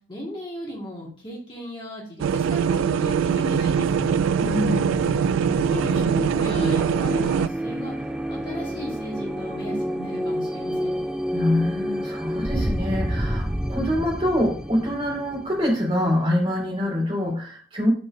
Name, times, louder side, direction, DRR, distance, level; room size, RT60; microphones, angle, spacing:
voice 1, 0.1-4.2 5.7-7.9 8.3-11.0, equal, 25° left, -5 dB, 2.5 m, -36 dB
sound 1, 2.2-7.5, right 7 dB, 85° right, 0.3 m, -22 dB
sound 2, 3.2-16.7, equal, 5° right, 0.5 m, -29 dB
voice 2, 4.4-5.1 11.3-17.9, left 1 dB, 30° right, -2 dB, 3.2 m, -25 dB
6.6 x 4.8 x 5.2 m, 0.43 s
head